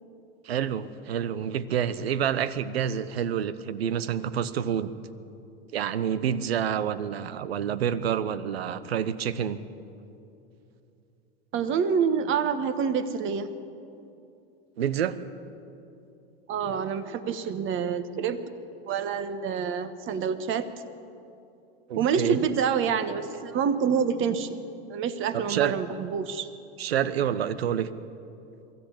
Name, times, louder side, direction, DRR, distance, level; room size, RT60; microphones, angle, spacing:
voice 1, 0.4-4.9 5.7-9.6 14.8-15.2 21.9-22.4 25.3-25.7 26.8-27.9, right 9 dB, 85° right, 14 dB, 1.0 m, -28 dB
voice 2, 11.5-13.5 16.5-18.4 18.9-20.7 22.0-24.6 24.9-26.5, right 7 dB, 40° right, 10 dB, 1.5 m, -27 dB
23.0 x 13.5 x 8.5 m, 2.7 s
hypercardioid pair, 100°, 30 cm